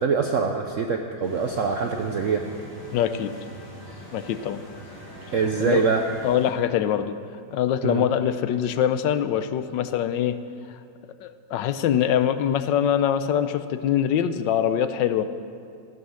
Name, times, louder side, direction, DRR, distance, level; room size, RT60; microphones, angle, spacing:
voice 1, 0.0-2.4 5.3-6.0 7.8-8.1, right 5 dB, 55° right, 4 dB, 0.9 m, -24 dB
sound 1, 1.2-6.5, equal, 35° left, 3.4 m, -43 dB
voice 2, 2.9-3.3 4.1-4.6 5.6-5.8 6.2-7.2 7.5-10.4 11.2-15.2, left 9 dB, 85° left, 11 dB, 1.4 m, -23 dB
14.0 x 13.0 x 6.4 m, 2.4 s
omnidirectional pair, 1.9 m